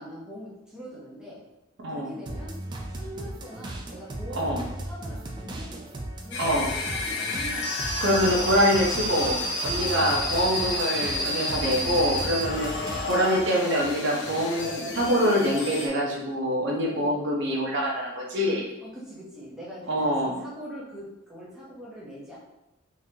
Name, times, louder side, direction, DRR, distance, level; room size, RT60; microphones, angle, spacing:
voice 1, 0.0-1.4 1.9-2.6 2.9-5.8 6.2-7.7 9.7-10.1 11.6-13.1 16.9-17.3 18.8-22.4, equal, 5° right, -7 dB, 0.9 m, -42 dB
sound 1, 2.3-13.5 13.8-15.2, right 1 dB, 20° right, 0.3 m, -37 dB
sound 2, 6.3-15.9, left 2 dB, 55° left, 0.6 m, -30 dB
voice 2, 8.0-12.7 13.0-18.6 19.9-20.4, equal, 55° right, -2 dB, 0.7 m, -25 dB
3.8 x 3.0 x 2.8 m, 0.92 s
head